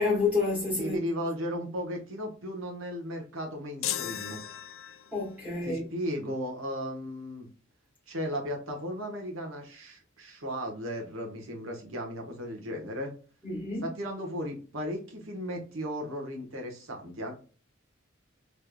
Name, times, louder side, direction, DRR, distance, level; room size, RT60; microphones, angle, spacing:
voice 1, 0.0-1.0 5.1-5.9 13.4-13.8, left 3 dB, 5° right, 1.5 m, -28 dB
voice 2, 0.8-4.4 5.6-7.5 8.1-13.1 13.8-17.3, equal, 80° right, 1.1 m, -35 dB
sound 1, 3.8-5.3, left 11 dB, 70° left, 0.3 m, -35 dB
3.5 x 3.2 x 2.2 m
head